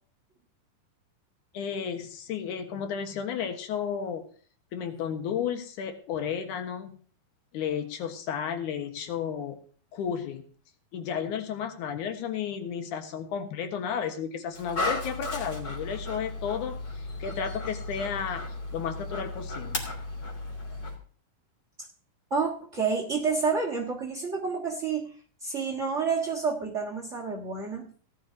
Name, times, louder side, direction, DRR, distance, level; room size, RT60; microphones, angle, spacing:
voice 1, 1.5-4.2 4.7-7.0 7.5-9.6 9.9-10.4 10.9-18.5 18.7-19.9, left 7 dB, 65° left, 6 dB, 2.6 m, -33 dB
Dog, 14.5-21.0, left 2 dB, 35° left, 2.9 m, -35 dB
voice 2, 22.3-25.1 25.4-27.9, right 5 dB, 80° right, 0 dB, 0.6 m, -29 dB
17.5 x 11.5 x 2.7 m, 0.44 s
omnidirectional pair, 4.0 m